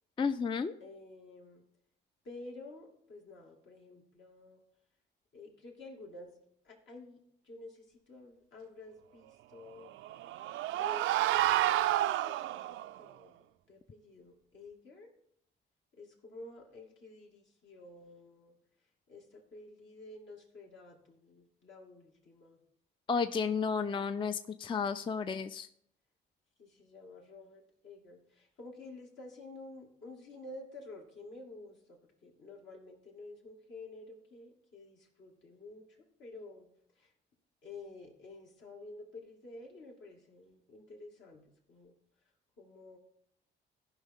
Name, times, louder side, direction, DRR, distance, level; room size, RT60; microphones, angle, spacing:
voice 1, 0.2-0.7 23.1-25.7, left 5 dB, 25° left, 11 dB, 0.4 m, -32 dB
voice 2, 0.8-1.6 2.2-4.6 5.3-6.3 6.6-7.2 7.4-9.9 10.7-15.1 16.0-18.6 19.1-22.6 26.6-36.7 37.0-37.1 37.6-41.9 42.6-43.0, left 2 dB, 70° left, -1 dB, 2.6 m, -51 dB
sound 1, 9.9-12.9, right 14 dB, 80° right, 0.4 m, -30 dB
14.5 x 5.4 x 3.7 m, 0.71 s
cardioid pair, 90°, 20 cm